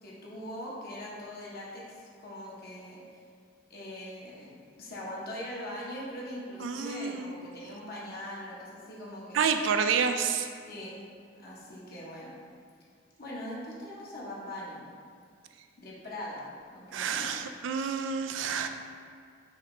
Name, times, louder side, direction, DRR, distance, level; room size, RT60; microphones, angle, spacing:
voice 1, 0.0-3.2 3.7-9.4 10.7-11.0 11.3-12.3 13.2-14.8 15.8-16.4 16.7-17.3, left 1 dB, 55° left, -6 dB, 1.0 m, -41 dB
voice 2, 6.6-7.3 9.3-10.5 16.9-18.7, right 6 dB, 75° right, 7 dB, 0.3 m, -29 dB
5.6 x 2.8 x 3.2 m, 2.2 s
head